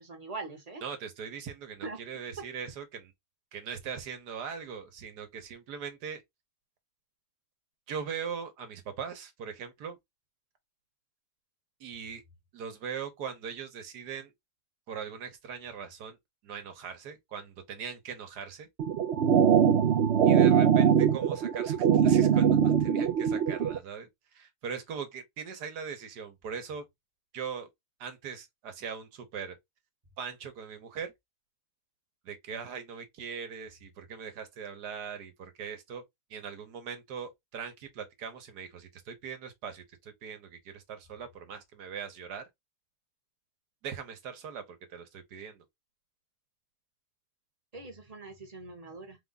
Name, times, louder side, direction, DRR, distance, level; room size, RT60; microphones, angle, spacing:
voice 1, 0.0-0.8 1.8-2.0 47.7-49.2, right 3 dB, 25° right, 1.0 m, -42 dB
voice 2, 0.8-3.1 3.5-6.2 7.9-10.0 11.8-12.2 12.5-14.3 14.9-16.2 16.4-18.7 20.2-21.8 22.0-26.9 27.3-27.7 28.0-29.6 30.2-31.1 32.2-36.0 36.3-42.4 43.8-45.6, right 6 dB, 85° right, 1.6 m, -40 dB
sound 1, 18.8-23.8, right 8 dB, 60° right, 0.7 m, -22 dB
4.3 x 2.3 x 3.9 m
omnidirectional pair, 1.7 m